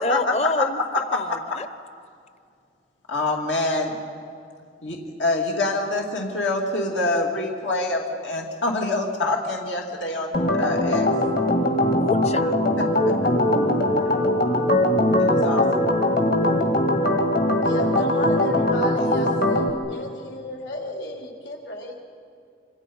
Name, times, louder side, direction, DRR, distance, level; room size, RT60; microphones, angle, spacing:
voice 1, 0.0-1.7 12.0-12.5, left 2 dB, 35° left, 12 dB, 0.8 m, -27 dB
voice 2, 3.1-3.9 4.8-10.3 10.6-11.1 14.1-14.2 15.2-15.9, left 2 dB, 90° left, 0 dB, 2.6 m, -25 dB
Organ, 10.3-19.7, left 1 dB, 55° left, 2.1 m, -21 dB
voice 3, 17.6-22.0, left 1 dB, 75° left, 1 dB, 3.4 m, -33 dB
26.5 x 26.5 x 5.5 m, 2.4 s
head